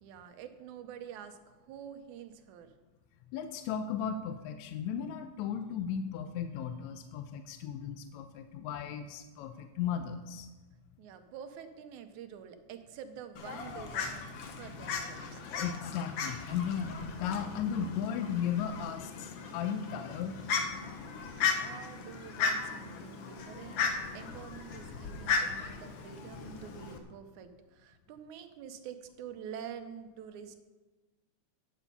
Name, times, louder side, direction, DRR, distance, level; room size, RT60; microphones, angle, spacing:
voice 1, 0.0-2.7 11.0-14.3 14.5-15.4 21.6-30.6, right 8 dB, 80° right, 8 dB, 2.2 m, -47 dB
voice 2, 3.3-10.5 15.5-20.3, left 8 dB, 80° left, 8 dB, 1.8 m, -36 dB
Fowl, 13.4-27.0, left 5 dB, 60° left, 1.7 m, -36 dB
11.5 x 8.5 x 5.3 m, 1.2 s
omnidirectional pair, 3.5 m